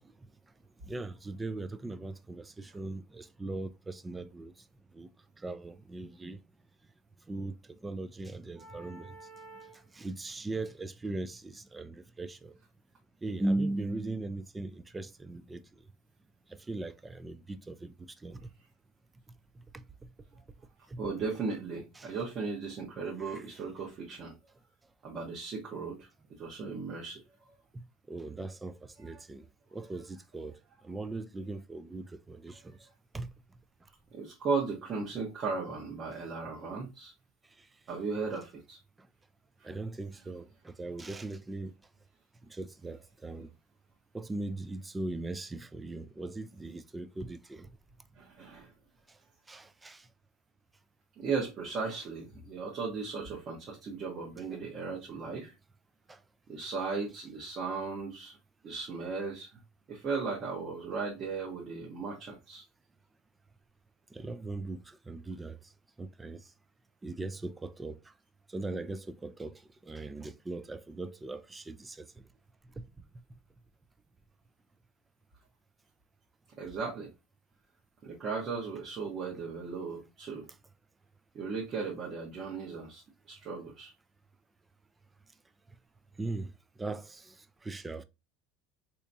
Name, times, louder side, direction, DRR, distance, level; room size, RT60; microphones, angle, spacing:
voice 1, 0.8-4.5 4.9-5.1 5.4-6.4 7.3-7.5 7.8-9.2 9.9-12.5 13.2-15.6 16.5-18.5 19.7-19.8 20.9-21.0 22.0-22.1 23.3-23.4 28.1-29.5 29.7-30.6 30.8-32.8 33.1-33.3 39.6-41.7 42.5-43.5 44.1-47.7 49.5-50.1 54.5-54.6 56.1-56.2 64.1-65.6 66.0-66.4 67.0-68.0 68.5-69.5 69.8-72.1 86.2-86.5 86.8-87.3 87.6-88.0, right 2 dB, 15° right, 0.3 m, -39 dB
voice 2, 8.6-9.8 21.0-24.3 25.0-26.1 26.4-27.2 29.1-29.2 34.1-37.1 37.9-38.8 39.6-39.7 48.2-48.7 51.2-55.5 56.5-58.4 58.6-59.6 59.9-62.6 76.6-77.1 78.0-80.5 81.3-83.9, right 4 dB, 40° right, 1.0 m, -36 dB
3.4 x 2.8 x 2.6 m
supercardioid pair, 115°, 0 cm